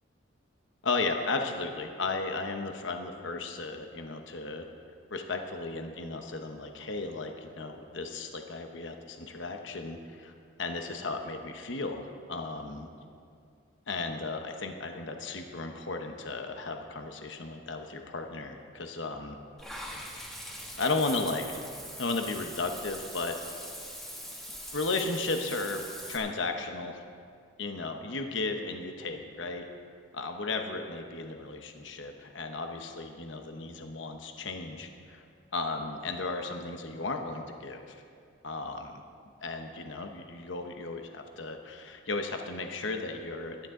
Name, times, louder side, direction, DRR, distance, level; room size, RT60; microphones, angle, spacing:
voice 1, 0.8-4.6 5.1-10.3 10.6-12.9 13.9-19.4 20.8-21.6 22.0-23.4 24.7-25.8 26.1-27.0 27.6-29.7 30.1-35.2 35.5-38.0 38.4-38.9 39.4-43.7, left 3 dB, 65° left, 5 dB, 1.0 m, -35 dB
Water / Bathtub (filling or washing), 19.6-26.2, equal, ahead, 1.5 m, -42 dB
17.0 x 12.0 x 3.8 m, 2.3 s
head